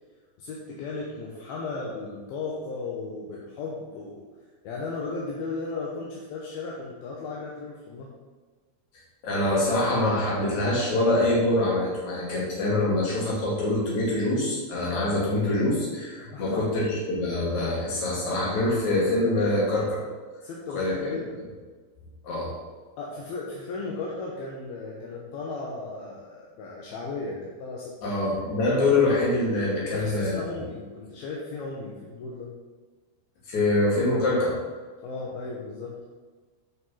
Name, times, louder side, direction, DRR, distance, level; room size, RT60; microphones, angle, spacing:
voice 1, 0.4-4.3 4.6-8.1 16.2-16.9 20.4-21.4 23.0-28.2 29.8-32.5 35.0-36.0, left 3 dB, 70° left, -3 dB, 2.5 m, -35 dB
voice 2, 9.2-20.0 20.7-21.1 22.2-22.5 28.0-30.4 33.5-34.5, left 2 dB, 45° left, -4 dB, 3.4 m, -24 dB
10.0 x 5.4 x 5.7 m, 1.4 s
omnidirectional pair, 5.6 m